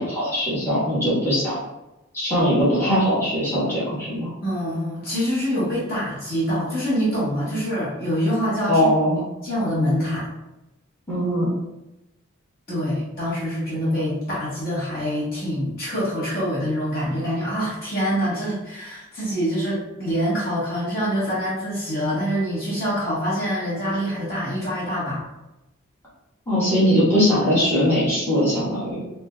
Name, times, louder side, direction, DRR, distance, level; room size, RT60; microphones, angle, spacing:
voice 1, 0.0-1.6 2.1-4.3 8.7-9.2 11.1-11.5 26.5-29.0, equal, 10° left, -11 dB, 1.2 m, -20 dB
voice 2, 4.4-8.9 9.4-10.3 12.7-25.3, equal, 45° left, -8 dB, 1.2 m, -25 dB
4.1 x 2.8 x 2.2 m, 0.95 s
head